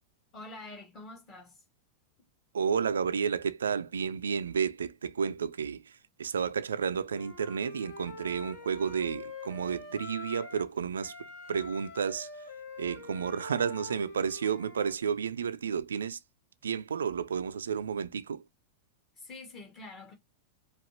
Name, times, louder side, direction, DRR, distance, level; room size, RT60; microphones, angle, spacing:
voice 1, 0.3-1.6 19.1-20.1, left 2 dB, 30° left, 2.0 m, -46 dB
voice 2, 2.5-11.1 11.5-12.3 12.8-16.2 16.6-18.4, right 6 dB, 70° right, 0.4 m, -31 dB
Wind instrument woodwind instrument, 7.1-10.7 11.0-14.9, left 3 dB, 50° left, 2.0 m, -45 dB
4.9 x 2.4 x 2.9 m
figure-of-eight pair, 90°, 0 cm